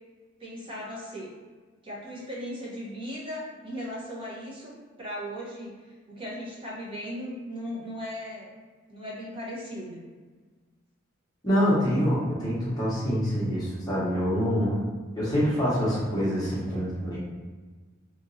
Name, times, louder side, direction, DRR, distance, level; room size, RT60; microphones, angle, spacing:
voice 1, 0.4-1.3 1.8-4.7 5.0-8.5 8.9-10.0, equal, 25° right, -6 dB, 0.8 m, -37 dB
voice 2, 11.4-14.8 15.1-17.2, equal, 20° left, -8 dB, 1.0 m, -25 dB
2.9 x 2.5 x 2.6 m, 1.4 s
head